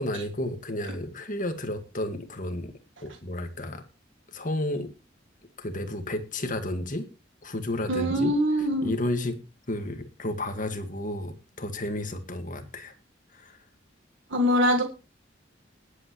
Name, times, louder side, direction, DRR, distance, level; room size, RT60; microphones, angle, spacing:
voice 1, 0.0-2.7 3.0-3.8 4.3-4.9 5.6-7.1 7.4-8.3 8.8-9.4 9.7-12.9 13.3-13.6, left 1 dB, 45° left, 7 dB, 1.9 m, -32 dB
voice 2, 7.9-8.9 14.3-14.8, equal, 80° right, 3 dB, 1.7 m, -23 dB
20.0 x 8.3 x 3.1 m, 0.29 s
head